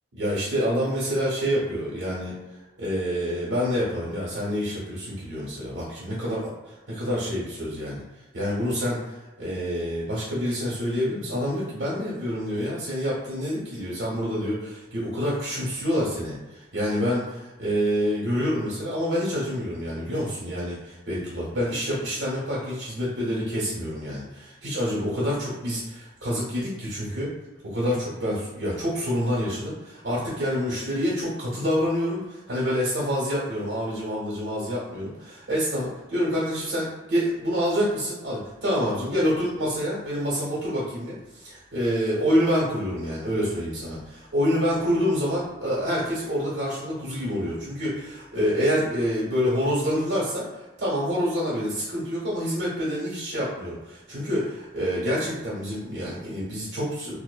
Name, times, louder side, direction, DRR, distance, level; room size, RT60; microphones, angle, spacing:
voice 1, 0.1-2.3 2.8-8.0 8.3-27.3 27.6-57.2, equal, 90° right, -7 dB, 0.9 m, -27 dB
2.6 x 2.1 x 2.2 m, 1.1 s
head